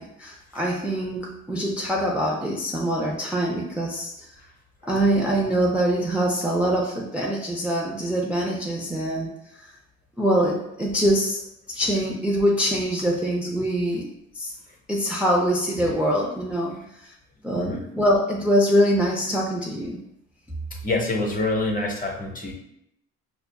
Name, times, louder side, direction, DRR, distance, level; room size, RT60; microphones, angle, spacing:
voice 1, 0.0-4.3 4.9-9.3 9.6-9.7 10.2-11.4 11.7-14.1 14.3-14.5 14.9-16.8 17.0-17.1 17.4-20.0, equal, 5° right, -3 dB, 0.5 m, -24 dB
voice 2, 17.5-17.8 20.8-22.5, left 2 dB, 25° left, 0 dB, 0.8 m, -26 dB
5.0 x 2.4 x 2.2 m, 0.80 s
cardioid pair, 90°, 30 cm